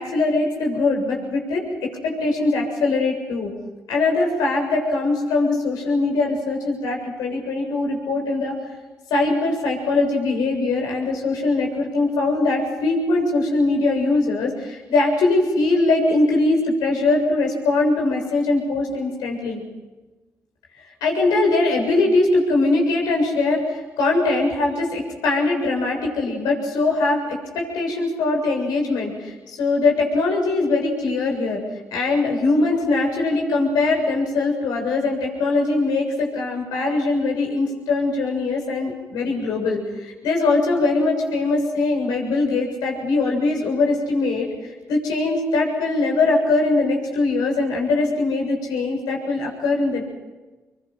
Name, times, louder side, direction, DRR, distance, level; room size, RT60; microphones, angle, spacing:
voice 1, 0.0-3.5 3.9-8.5 9.1-19.6 21.0-31.6 31.9-44.5 44.9-50.0, left 3 dB, 85° left, 1 dB, 7.2 m, -21 dB
28.0 x 23.5 x 6.0 m, 1.2 s
supercardioid pair, 50°, 7 cm